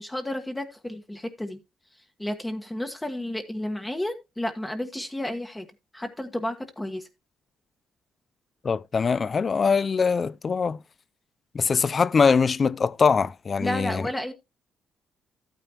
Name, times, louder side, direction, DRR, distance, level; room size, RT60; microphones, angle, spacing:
voice 1, 0.0-1.6 2.2-5.7 5.9-7.1 13.6-14.3, left 1 dB, 10° left, 1.3 m, -32 dB
voice 2, 8.6-10.8 11.5-14.0, left 5 dB, 40° left, 0.4 m, -22 dB
12.5 x 9.1 x 2.9 m
cardioid pair, 90°, 0 cm